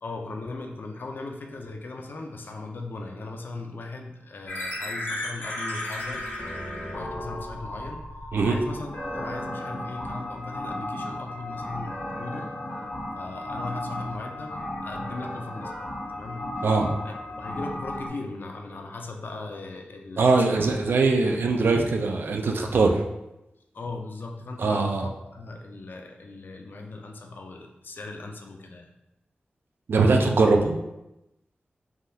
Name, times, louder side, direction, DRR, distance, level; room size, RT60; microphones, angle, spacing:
voice 1, 0.0-6.6 6.9-8.1 8.4-12.5 13.1-15.7 16.1-16.7 17.0-20.7 21.1-21.4 23.7-28.9, left 3 dB, 65° left, 2 dB, 0.4 m, -38 dB
sound 1, 4.5-18.1, left 1 dB, 85° left, 0.9 m, -34 dB
voice 2, 20.2-23.0 24.6-25.0 29.9-30.8, right 3 dB, 80° right, 3 dB, 0.4 m, -21 dB
3.4 x 2.3 x 2.6 m, 0.92 s
wide cardioid pair, 80°, 4 cm